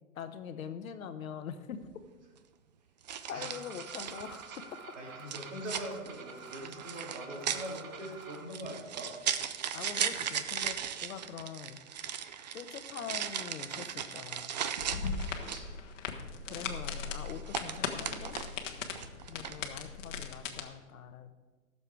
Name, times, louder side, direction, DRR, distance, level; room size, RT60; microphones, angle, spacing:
voice 1, 0.1-1.8 3.3-4.6 9.7-11.8 12.5-14.5 16.5-18.4 19.3-21.3, left 7 dB, 85° left, 9 dB, 1.2 m, -43 dB
sound 1, 1.7-2.0 3.1-4.7 5.3-15.8 16.9-18.6 18.9-19.7, right 8 dB, 35° right, 0.4 m, -37 dB
sound 2, 3.3-8.5, right 5 dB, 85° right, 1.5 m, -49 dB
voice 2, 4.9-9.1 13.0-13.2 15.4-15.7 16.5-16.7, equal, 60° right, -2 dB, 3.8 m, -43 dB
sound 3, 14.8-20.6, left 6 dB, 65° left, 1.5 m, -38 dB
14.5 x 7.0 x 4.8 m, 1.3 s
hypercardioid pair, 160°, 40 cm